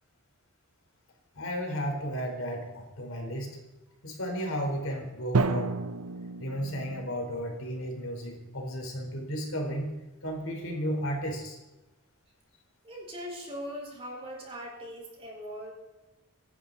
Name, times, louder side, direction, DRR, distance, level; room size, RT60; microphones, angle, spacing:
voice 1, 1.3-3.6 4.0-5.8 6.4-11.6, equal, 60° left, 1 dB, 4.4 m, -34 dB
Drum, 5.3-7.3, right 3 dB, 80° right, 0.8 m, -30 dB
voice 2, 12.8-15.7, equal, 25° right, -1 dB, 4.7 m, -40 dB
26.0 x 11.5 x 4.2 m, 1.1 s
head